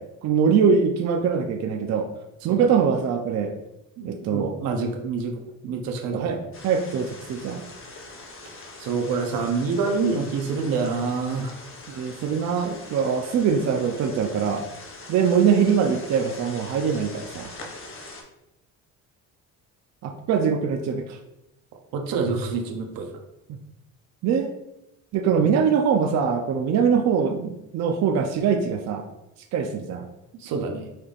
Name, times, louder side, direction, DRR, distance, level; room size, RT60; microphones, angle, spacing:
voice 1, 0.0-2.1 2.4-3.5 4.0-4.6 6.1-6.4 6.6-7.6 11.9-14.6 15.1-17.5 20.0-21.2 23.5-23.6 24.2-24.5 25.1-29.0 29.5-30.1, right 6 dB, 50° right, 5 dB, 0.5 m, -23 dB
voice 2, 4.0-6.3 8.8-11.6 21.9-23.1 25.4-25.5 30.3-30.9, right 4 dB, 85° right, 4 dB, 0.8 m, -27 dB
sound 1, 6.5-18.2, left 2 dB, 40° left, 0.8 m, -42 dB
5.7 x 3.4 x 2.4 m, 0.90 s
cardioid pair, 140°, 34 cm